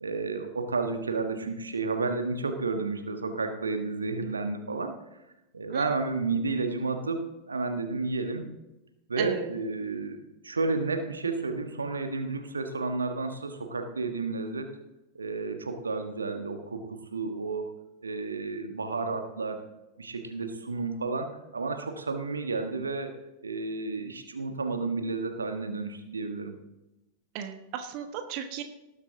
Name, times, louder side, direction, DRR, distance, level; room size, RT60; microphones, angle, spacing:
voice 1, 0.0-4.9 5.5-8.5 9.1-14.7 15.1-17.7 18.0-19.6 20.0-23.1 23.4-26.5, right 3 dB, 75° right, 6 dB, 1.3 m, -31 dB
voice 2, 9.2-9.5 27.3-28.6, right 8 dB, 45° right, 7 dB, 1.2 m, -35 dB
18.5 x 8.2 x 3.8 m, 0.97 s
figure-of-eight pair, 90°, 0 cm